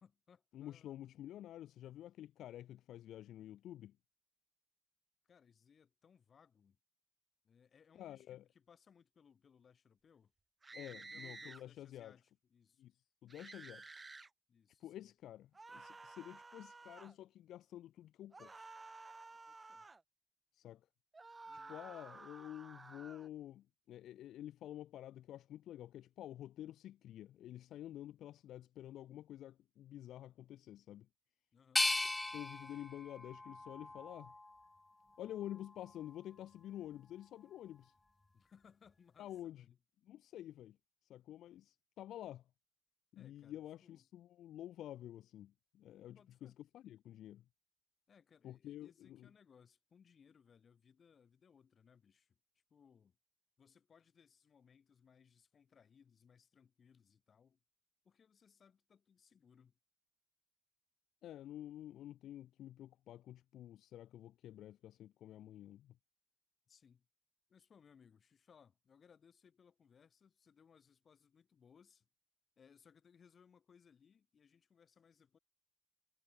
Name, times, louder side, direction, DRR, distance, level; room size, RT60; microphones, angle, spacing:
voice 1, 0.0-1.0 5.2-6.8 7.4-10.3 10.7-12.9 14.5-15.1 19.3-19.9 21.5-21.8 31.5-31.9 38.3-39.8 43.1-44.1 46.0-46.6 48.1-53.2 53.6-57.6 58.0-59.8 66.7-67.1 67.5-72.1 72.6-75.4, left 7 dB, 50° left, 7.6 m, -67 dB
voice 2, 0.5-4.0 7.9-8.4 10.8-12.1 12.8-12.9 13.2-13.9 14.8-18.7 20.5-20.8 21.7-31.1 32.3-34.3 35.2-37.9 39.2-39.6 40.1-40.8 41.1-42.4 43.1-47.4 48.4-49.3 61.2-66.0, left 12 dB, 80° left, 2.4 m, -50 dB
sound 1, 10.6-11.6 13.3-14.3 15.5-17.1 18.3-20.0 21.1-23.3, right 3 dB, 25° right, 0.5 m, -53 dB
sound 2, 31.8-34.7 35.2-36.0, left 2 dB, 15° left, 0.7 m, -39 dB
cardioid pair, 90°, 0 cm